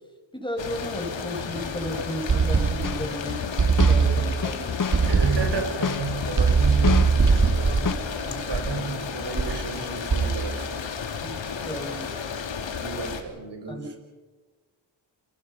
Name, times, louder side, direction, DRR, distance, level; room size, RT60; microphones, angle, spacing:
voice 1, 0.3-3.4 3.9-4.8 7.6-8.5 11.2-11.4 11.7-12.2 13.7-14.0, equal, 10° left, 2 dB, 7.0 m, -34 dB
sound 1, 0.6-13.2, left 6 dB, 70° left, 3.1 m, -33 dB
sound 2, 2.3-3.1 3.6-4.5 4.9-5.7 6.4-8.9 9.4-9.7 10.1-10.6, right 5 dB, 40° right, 1.9 m, -21 dB
sound 3, 2.8-7.9, left 6 dB, 45° left, 1.2 m, -30 dB
voice 2, 5.0-7.8 8.2-10.8 12.8-14.0, right 4 dB, 60° right, 4 dB, 6.3 m, -33 dB
29.0 x 22.5 x 5.8 m, 1.4 s
cardioid pair, 55°, 46 cm